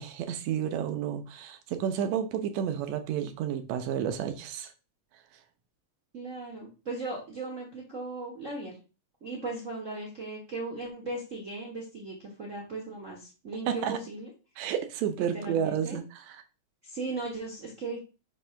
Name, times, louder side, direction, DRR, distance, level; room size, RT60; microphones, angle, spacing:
voice 1, 0.0-4.7 13.7-14.0 14.6-16.0, right 8 dB, 75° right, 1.9 m, -31 dB
voice 2, 6.1-8.8 9.2-14.3 15.3-16.0 16.8-18.0, right 3 dB, 50° right, 0.9 m, -37 dB
6.2 x 3.0 x 5.6 m
omnidirectional pair, 3.3 m